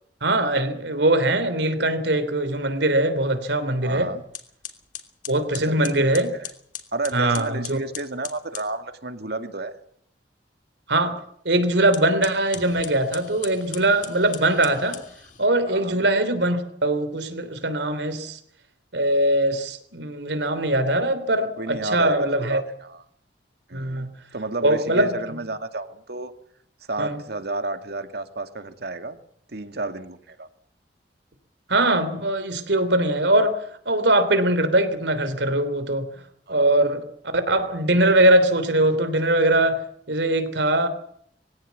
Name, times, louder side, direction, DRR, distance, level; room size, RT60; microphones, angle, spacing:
voice 1, 0.2-4.1 5.3-6.3 7.1-7.8 10.9-15.0 15.4-18.4 18.9-22.6 23.7-24.1 24.6-25.4 27.0-27.2 31.7-33.6 33.8-36.1 36.5-37.0 37.3-39.8 40.1-40.9, right 1 dB, 85° right, 3.4 m, -21 dB
sound 1, 3.8-3.9 4.3-8.7 11.8-15.5, left 9 dB, 50° left, 3.0 m, -39 dB
voice 2, 3.8-4.2 5.6-6.5 6.9-9.8 15.7-16.0 21.6-23.0 23.7-24.1 24.3-26.3 26.9-29.2 29.5-30.5 36.5-37.0, right 2 dB, 65° right, 2.2 m, -32 dB
22.5 x 17.0 x 8.3 m
head